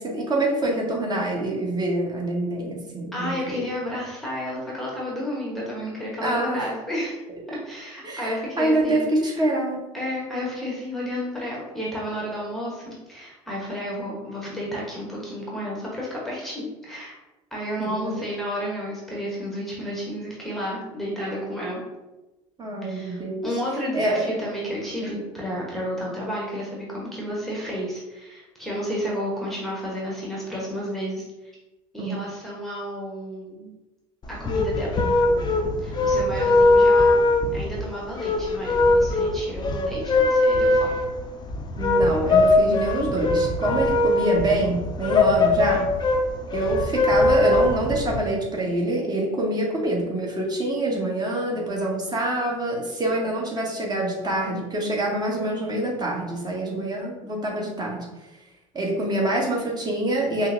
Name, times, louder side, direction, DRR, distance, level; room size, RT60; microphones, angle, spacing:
voice 1, 0.0-3.6 6.2-6.7 8.0-9.8 17.8-18.1 22.6-23.5 23.9-24.2 25.0-25.1 32.0-32.3 41.8-45.9 46.5-58.1 58.7-60.5, right 1 dB, 25° right, -2 dB, 1.1 m, -26 dB
voice 2, 3.1-7.2 7.5-9.4 9.9-17.1 17.5-21.8 22.8-31.2 31.9-33.7 34.3-37.2 37.5-41.0, equal, ahead, -5 dB, 1.0 m, -32 dB
sound 1, 34.2-48.2, left 2 dB, 25° left, 0.6 m, -21 dB
5.5 x 2.0 x 2.6 m, 1.1 s
hypercardioid pair, 70°, 18 cm